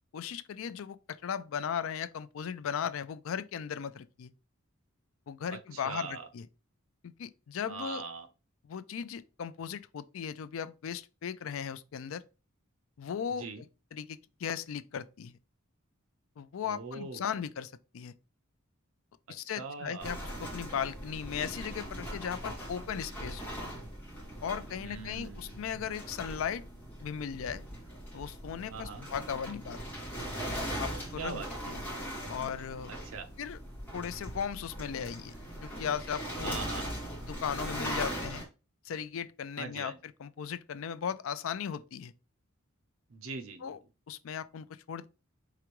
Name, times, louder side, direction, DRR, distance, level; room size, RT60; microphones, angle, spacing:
voice 1, 0.1-4.3 5.3-6.5 7.0-8.0 8.6-12.2 13.0-13.5 13.9-15.4 16.4-18.1 19.3-23.4 24.4-26.6 27.0-27.6 28.1-29.8 30.8-31.8 32.3-32.9 33.4-33.6 33.9-35.3 35.6-36.6 37.3-38.4 38.8-42.1 43.6-43.8 44.1-45.1, left 7 dB, 70° left, 0.4 m, -37 dB
voice 2, 5.5-6.3 7.7-8.3 13.4-13.6 16.6-17.4 19.3-20.1 24.8-25.7 28.7-29.1 31.2-31.5 32.9-33.3 36.4-37.0 39.6-40.0 43.1-43.7, right 4 dB, 75° right, 0.8 m, -41 dB
sound 1, 20.0-38.4, equal, 10° left, 2.0 m, -40 dB
4.8 x 3.4 x 3.0 m
head